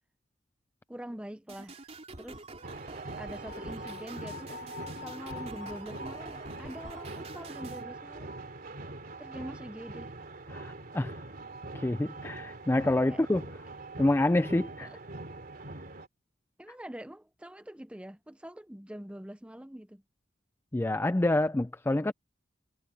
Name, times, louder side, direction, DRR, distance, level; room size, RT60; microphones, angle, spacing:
voice 1, 0.9-1.9 2.2-2.5 3.2-4.6 4.9-8.4 9.2-10.1 13.1-13.2 14.8-15.0 16.6-20.0, right 1 dB, 5° right, 0.7 m, -44 dB
sound 1, 1.5-7.8, right 2 dB, 35° right, 3.7 m, -47 dB
sound 2, 2.6-16.1, right 2 dB, 50° right, 2.9 m, -43 dB
sound 3, 3.4-8.5, left 9 dB, 45° left, 0.8 m, -49 dB
voice 2, 10.5-11.2 11.7-13.5 14.0-14.9 20.7-22.1, left 1 dB, 10° left, 0.4 m, -27 dB
head